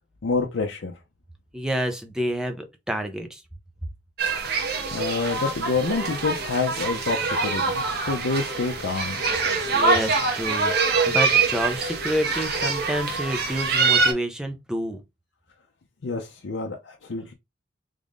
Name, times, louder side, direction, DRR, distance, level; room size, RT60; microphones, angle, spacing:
voice 1, 0.2-0.9 4.9-9.2 16.0-17.3, left 4 dB, 85° left, 0.6 m, -27 dB
voice 2, 1.5-3.4 9.7-15.0, equal, 5° right, 0.6 m, -29 dB
sound 1, 4.2-14.1, right 4 dB, 60° right, 1.0 m, -24 dB
3.6 x 2.5 x 3.5 m
head